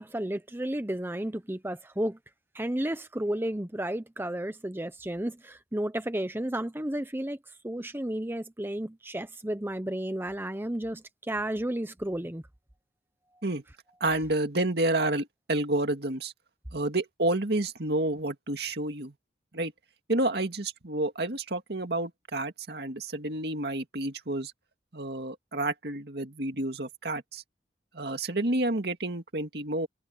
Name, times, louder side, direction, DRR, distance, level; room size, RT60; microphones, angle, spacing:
voice 1, 0.0-2.2 2.5-7.4 7.6-12.4, right 1 dB, 15° right, 0.9 m, -32 dB
voice 2, 14.0-16.3 16.7-19.1 19.5-19.7 20.1-24.5 24.9-27.4 27.9-29.9, right 2 dB, 65° right, 2.2 m, -29 dB
head